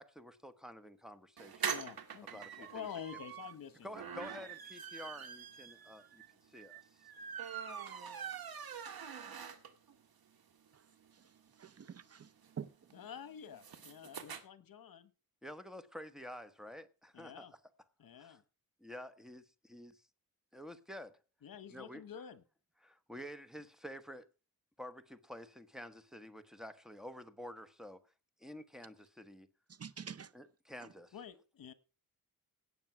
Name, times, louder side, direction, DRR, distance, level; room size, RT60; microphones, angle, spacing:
voice 1, 0.0-1.7 2.3-2.9 3.8-6.2 6.5-7.1 15.4-17.6 18.2-18.4 18.8-20.0 20.5-21.2 21.7-22.0 22.8-24.2 24.8-28.0 28.4-29.5 30.3-31.2, equal, ahead, 1.1 m, -50 dB
sound 1, 1.4-10.0 10.3-10.4 10.7-10.8 11.0-14.4, right 7 dB, 80° right, 1.8 m, -44 dB
voice 2, 1.6-2.3 2.6-4.2 12.9-15.1 17.1-17.5 18.0-18.4 21.4-22.4 31.1-31.7, left 8 dB, 65° left, 1.2 m, -48 dB
voice 3, 11.6-12.3 12.6-12.7 29.8-30.3, right 7 dB, 45° right, 0.6 m, -45 dB
17.0 x 7.0 x 6.0 m
wide cardioid pair, 140°, 36 cm